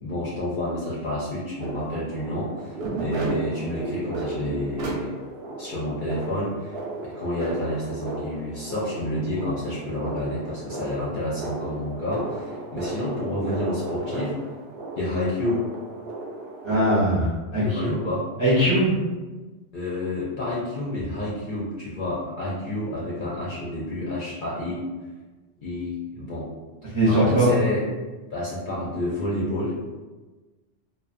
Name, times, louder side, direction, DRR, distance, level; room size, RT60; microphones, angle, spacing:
voice 1, 0.0-5.1 5.6-6.8 7.0-14.3 15.0-15.7 17.6-18.3 19.7-24.8 25.6-26.5 26.8-27.9 28.3-29.8, left 1 dB, 55° left, -7 dB, 0.6 m, -29 dB
sound 1, 1.6-16.7, right 2 dB, 65° right, 0.8 m, -34 dB
voice 2, 16.6-17.8 18.4-18.9 26.9-27.5, equal, 35° right, -9 dB, 0.5 m, -20 dB
2.7 x 2.1 x 2.4 m, 1.2 s
omnidirectional pair, 1.3 m